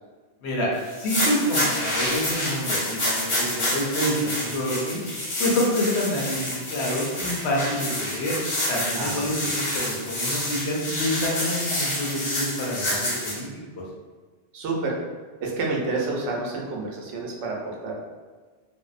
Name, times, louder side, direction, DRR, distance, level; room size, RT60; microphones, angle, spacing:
sound 1, 0.9-13.4, left 1 dB, 40° left, 0.5 m, -28 dB
voice 1, 1.0-5.0 5.4-8.4 8.7-13.5, left 1 dB, 75° left, -3 dB, 0.9 m, -27 dB
voice 2, 8.9-9.5 14.5-15.0 15.4-17.9, right 3 dB, 80° right, -2 dB, 0.9 m, -29 dB
2.6 x 2.0 x 2.4 m, 1.4 s
omnidirectional pair, 1.2 m